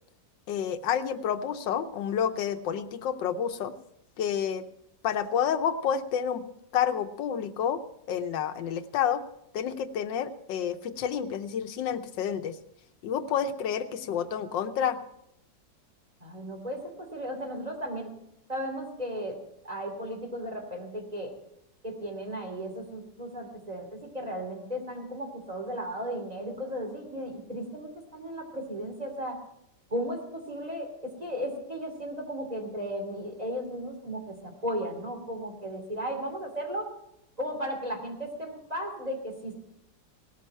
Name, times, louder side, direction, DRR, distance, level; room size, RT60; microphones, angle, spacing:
voice 1, 0.5-3.7 4.2-4.6 5.0-6.5 6.7-7.8 8.1-9.2 9.5-12.6 13.0-15.0, left 8 dB, 85° left, 10 dB, 1.5 m, -29 dB
voice 2, 16.2-18.1 18.5-19.4 19.6-21.3 21.8-29.4 29.9-36.9 37.4-39.5, equal, 20° right, 2 dB, 3.0 m, -35 dB
18.0 x 13.0 x 4.4 m, 0.79 s
omnidirectional pair, 1.9 m